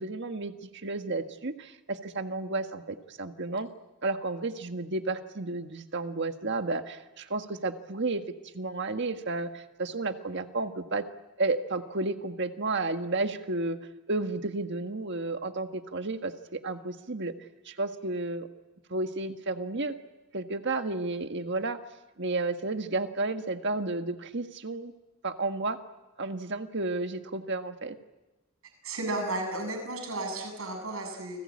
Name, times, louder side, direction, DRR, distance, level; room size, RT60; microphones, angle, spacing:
voice 1, 0.0-3.7 4.0-8.2 8.5-11.0 11.4-13.8 14.1-17.3 17.6-18.5 18.9-19.9 20.3-21.8 22.2-24.9 25.2-25.8 26.2-28.0, right 3 dB, 55° right, 7 dB, 1.7 m, -32 dB
voice 2, 28.8-31.4, right 2 dB, 80° right, 3 dB, 7.6 m, -33 dB
29.5 x 20.5 x 8.7 m, 1.1 s
head